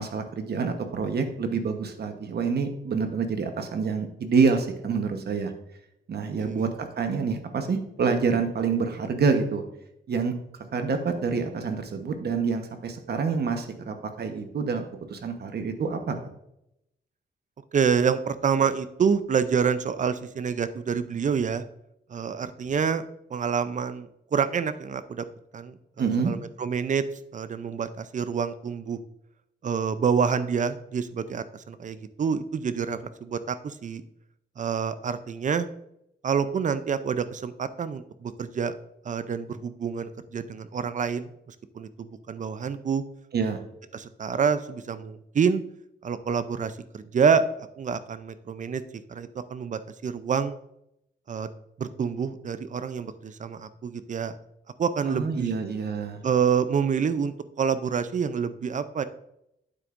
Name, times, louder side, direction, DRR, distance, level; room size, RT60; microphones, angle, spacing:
voice 1, 0.0-5.5 6.1-9.6 10.1-10.3 10.7-16.2 26.0-26.3 43.3-43.6 55.0-56.2, right 5 dB, 60° right, 6 dB, 1.1 m, -27 dB
voice 2, 17.7-21.6 22.1-23.0 23.3-25.2 25.5-27.0 27.3-29.0 29.6-34.0 34.6-35.7 36.2-38.8 39.0-41.3 41.7-43.0 43.9-45.6 46.0-50.6 51.3-51.5 51.8-54.3 54.8-55.5 56.2-59.0, right 6 dB, 45° right, 13 dB, 0.5 m, -27 dB
8.9 x 7.9 x 2.6 m, 0.81 s
wide cardioid pair, 125°, 18 cm